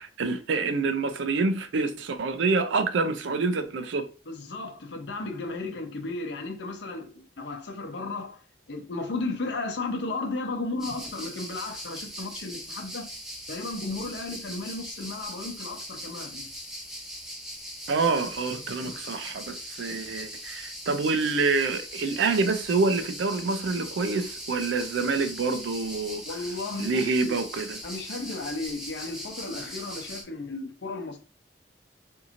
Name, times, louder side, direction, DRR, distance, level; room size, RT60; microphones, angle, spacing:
voice 1, 0.0-4.1 17.9-26.2 26.8-27.8, right 4 dB, 80° right, 0.4 m, -27 dB
voice 2, 4.3-8.4 8.7-13.1 13.5-16.5 26.2-27.4 27.8-31.2, left 3 dB, 70° left, 0.7 m, -34 dB
sound 1, 10.8-30.2, equal, ahead, 0.5 m, -40 dB
2.8 x 2.6 x 2.5 m
head